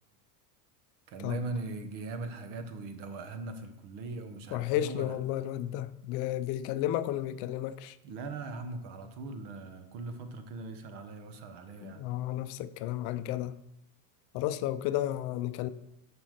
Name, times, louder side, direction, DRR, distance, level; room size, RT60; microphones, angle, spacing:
voice 1, 1.1-5.1 8.0-12.0, right 3 dB, 60° right, 1.3 m, -40 dB
voice 2, 4.5-8.0 11.8-13.5 14.3-15.7, left 13 dB, 60° left, 0.6 m, -32 dB
7.2 x 5.4 x 6.5 m
supercardioid pair, 130°, 45 cm